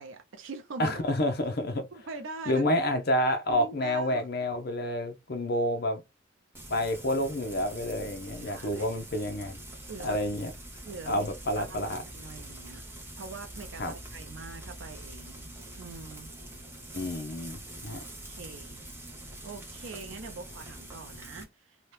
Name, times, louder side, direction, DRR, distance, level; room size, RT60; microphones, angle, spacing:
voice 1, 0.0-1.0 1.9-2.7 3.5-4.3 8.5-9.0 9.9-10.2 10.9-11.2 11.6-12.8 13.2-16.3 18.3-18.8 19.4-21.9, right 3 dB, 75° right, 0.5 m, -43 dB
voice 2, 0.8-1.9 2.5-6.0 6.7-9.6 10.0-10.5 11.1-12.0 13.8-13.9 16.9-18.0, left 1 dB, 50° left, 0.6 m, -29 dB
Frying (food), 6.5-21.4, right 1 dB, 10° right, 0.6 m, -44 dB
2.8 x 2.1 x 3.2 m
head